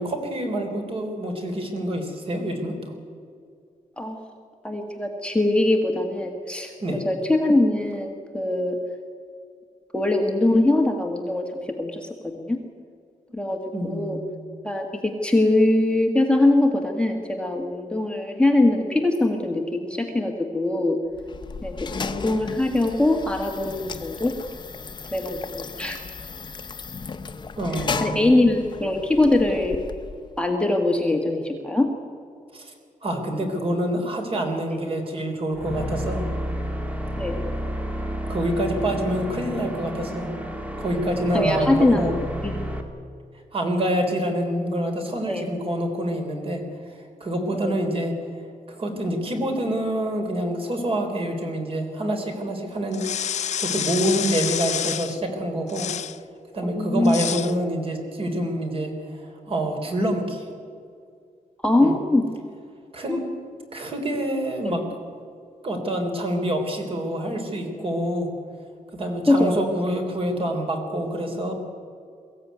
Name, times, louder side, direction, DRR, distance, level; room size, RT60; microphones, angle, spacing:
voice 1, 0.0-2.9 6.8-7.0 13.7-14.2 27.6-28.4 32.5-32.7 33.0-36.3 38.3-40.3 40.8-42.1 43.5-46.6 46.9-48.1 48.7-55.9 56.5-60.5 61.8-61.9 62.9-63.3 63.7-64.8 65.6-68.3 68.9-71.5, right 1 dB, 40° right, 4 dB, 3.8 m, -27 dB
voice 2, 4.6-8.8 9.9-12.1 12.3-12.6 13.3-13.6 13.8-14.2 14.6-21.0 21.6-21.7 22.0-24.3 25.1-26.0 28.0-29.8 30.4-31.9 37.2-37.4 41.3-42.1 42.4-42.7 45.3-45.4 47.5-47.7 56.6-57.2 61.6-62.2 63.1-63.2 64.6-64.7 69.3-69.6, left 2 dB, 5° left, 2 dB, 1.6 m, -22 dB
sound 1, 21.1-30.4, left 4 dB, 35° left, 0.9 m, -35 dB
sound 2, 35.5-42.8, equal, 10° right, 2.0 m, -31 dB
sound 3, 52.9-55.2 55.7-56.2 57.0-57.5, left 9 dB, 55° left, 0.4 m, -28 dB
22.5 x 15.5 x 9.4 m, 2.3 s
wide cardioid pair, 175°, 14 cm